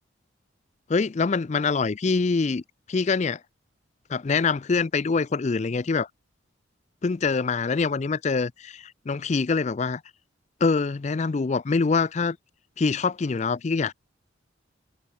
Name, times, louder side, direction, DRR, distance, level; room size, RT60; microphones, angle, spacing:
voice 1, 0.9-2.6 2.9-3.4 4.1-6.1 7.0-10.0 10.6-12.4 12.8-13.9, left 4 dB, 35° left, 0.4 m, -24 dB
head